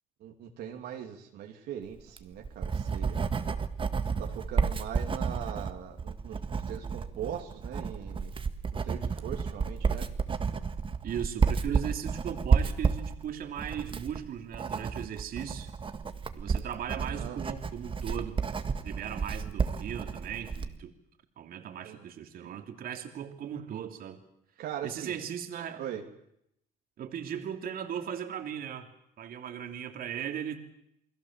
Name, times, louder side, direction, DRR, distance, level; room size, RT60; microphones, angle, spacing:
voice 1, 0.2-3.2 4.2-8.3 8.8-10.1 17.0-17.4 21.8-22.1 22.4-22.6 24.6-25.2 25.8-26.0, right 9 dB, 75° right, 2 dB, 2.9 m, -40 dB
Writing, 2.0-20.8, right 5 dB, 30° right, 1.7 m, -31 dB
voice 2, 11.0-15.7 16.3-18.4 18.8-20.9 21.4-24.2 24.8-25.8 27.0-28.9 29.2-30.6, right 9 dB, 60° right, 5 dB, 3.0 m, -37 dB
29.0 x 21.0 x 7.5 m, 0.77 s
cardioid pair, 110°, 17 cm